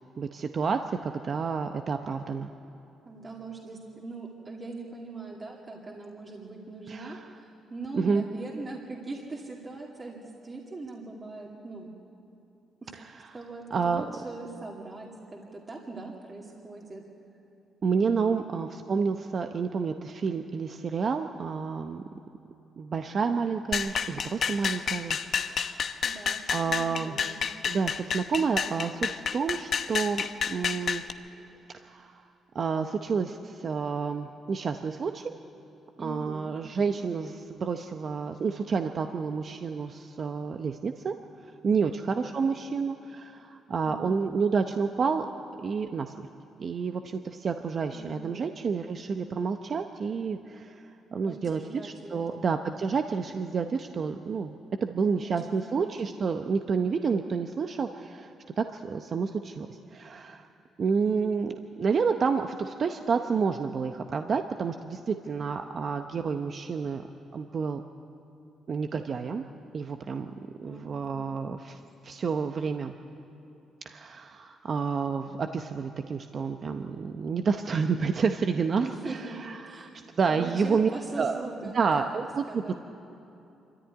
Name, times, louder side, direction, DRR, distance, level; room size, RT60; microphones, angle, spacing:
voice 1, 0.2-2.5 6.9-7.3 7.9-8.2 12.9-13.3 13.7-14.0 17.8-22.0 22.8-26.0 26.5-27.2 27.6-31.0 31.7-32.2 32.5-35.3 36.0-41.1 41.6-45.3 45.6-46.3 46.6-50.8 51.1-54.5 54.8-60.5 60.8-67.0 67.3-67.8 68.7-69.4 69.7-70.3 70.6-72.9 73.8-79.9 80.2-80.9 81.2-81.4 81.7-82.7, right 5 dB, 50° right, 6 dB, 0.8 m, -29 dB
voice 2, 3.1-11.9 12.8-12.9 13.3-17.0 18.4-18.6 26.0-27.4 35.9-36.5 41.8-42.3 43.8-44.3 47.9-48.5 51.3-52.4 55.2-56.2 70.6-71.4 78.8-79.4 79.7-79.9 80.3-82.0 82.5-82.7, right 3 dB, 30° right, -2 dB, 2.4 m, -41 dB
sound 1, 23.7-31.1, left 6 dB, 55° left, 0.9 m, -30 dB
24.5 x 14.0 x 9.6 m, 2.8 s
cardioid pair, 90°, 0 cm